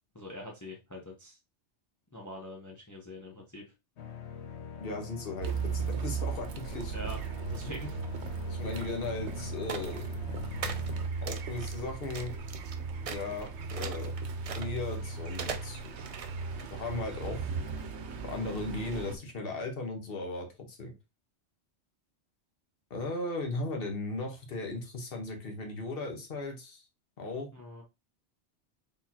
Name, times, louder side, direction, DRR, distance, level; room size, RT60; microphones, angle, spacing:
voice 1, 0.1-1.4 2.1-3.7 6.9-8.0 27.5-27.8, left 1 dB, 15° left, -1 dB, 0.9 m, -44 dB
sound 1, 4.0-11.1, left 6 dB, 75° left, 1.0 m, -44 dB
voice 2, 4.8-6.9 8.5-10.1 11.2-12.3 13.1-14.1 14.6-16.0 16.7-17.4 18.2-20.9 22.9-26.8 27.2-27.5, left 2 dB, 55° left, 3 dB, 1.3 m, -37 dB
Car, 5.4-19.2, right 5 dB, 75° right, 1.0 m, -37 dB
sound 2, 9.7-10.1 10.6-10.9 11.3-11.8 12.1-12.7 13.0-15.0 15.3-16.6, right 6 dB, 60° right, 0.3 m, -39 dB
4.4 x 3.7 x 2.8 m, 0.26 s
omnidirectional pair, 1.2 m